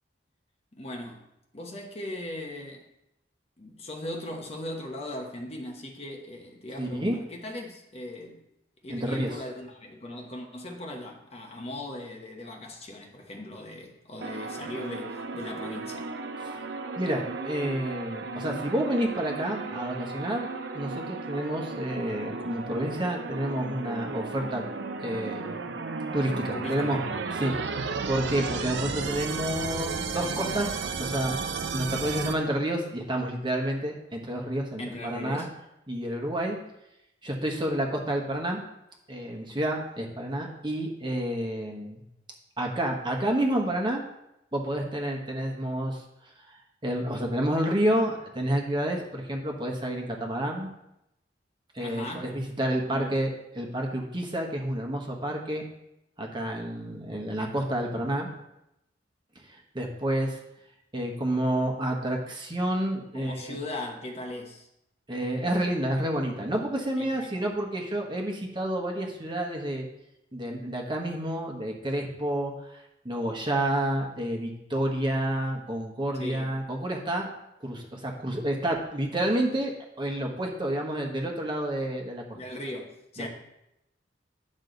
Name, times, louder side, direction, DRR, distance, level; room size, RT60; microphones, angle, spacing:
voice 1, 0.8-1.3 1.5-2.9 3.6-8.4 8.8-16.1 26.5-27.1 34.8-35.5 51.8-52.3 52.9-53.1 63.1-64.7 67.0-67.2 76.2-76.6 82.3-83.3, left 1 dB, 35° left, 2 dB, 1.1 m, -38 dB
voice 2, 6.8-7.1 8.9-9.3 16.4-16.6 17.0-20.5 20.7-24.6 25.0-25.7 26.1-27.0 27.3-31.4 31.7-35.5 35.9-36.6 37.2-38.6 39.1-42.0 42.6-44.0 44.5-46.0 46.5-46.6 46.8-50.7 51.7-55.6 56.2-58.3 59.5-60.4 60.9-63.6 65.1-69.9 70.3-72.8 73.0-77.3 77.6-82.4 83.2-83.3, right 1 dB, 25° right, 1 dB, 1.2 m, -29 dB
sound 1, 14.2-32.3, right 4 dB, 70° right, 0.6 m, -34 dB
9.8 x 6.3 x 4.0 m, 0.84 s
head